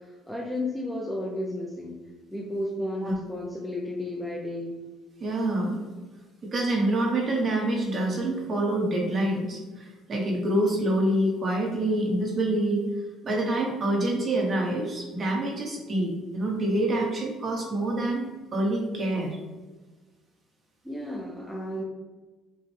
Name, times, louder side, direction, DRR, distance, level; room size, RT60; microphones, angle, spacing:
voice 1, 0.0-2.0 2.3-4.8 20.8-21.8, left 1 dB, ahead, -2 dB, 0.4 m, -33 dB
voice 2, 5.2-5.8 6.5-12.8 13.2-19.4, right 1 dB, 30° right, -1 dB, 0.9 m, -26 dB
5.7 x 2.1 x 3.2 m, 1.2 s
cardioid pair, 160°, 0 cm